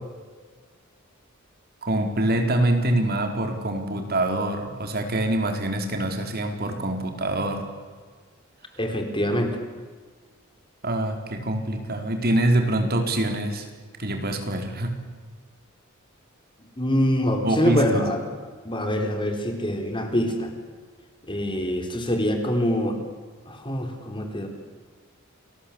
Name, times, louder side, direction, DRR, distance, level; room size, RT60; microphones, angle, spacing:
voice 1, 1.8-7.6 10.8-13.7 14.0-15.0 17.4-18.0, right 1 dB, 50° right, 5 dB, 4.1 m, -25 dB
voice 2, 8.8-9.6 16.8-18.2 18.6-20.5 21.3-23.0 23.5-24.5, equal, 25° left, 4 dB, 4.4 m, -24 dB
29.5 x 21.5 x 8.7 m, 1.5 s
head